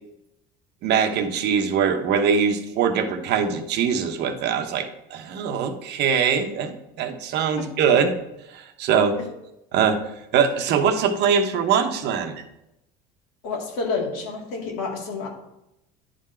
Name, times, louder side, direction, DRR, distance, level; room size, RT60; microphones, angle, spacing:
voice 1, 0.8-8.2 8.5-9.2 9.7-10.0 10.3-12.4, right 6 dB, 55° right, 7 dB, 0.9 m, -22 dB
voice 2, 13.4-15.3, left 4 dB, 80° left, 0 dB, 2.1 m, -29 dB
10.5 x 3.8 x 4.3 m, 0.87 s
supercardioid pair, 115°, 20 cm